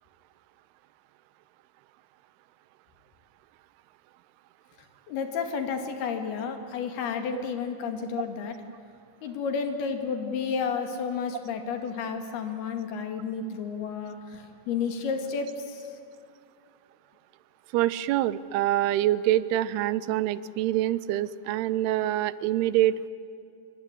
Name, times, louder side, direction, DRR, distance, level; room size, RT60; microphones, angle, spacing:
voice 1, 5.1-8.6 9.2-15.9, left 6 dB, 75° left, 6 dB, 4.2 m, -31 dB
voice 2, 17.7-23.1, right 13 dB, 85° right, 17 dB, 2.8 m, -25 dB
26.5 x 23.0 x 9.8 m, 2.5 s
omnidirectional pair, 4.5 m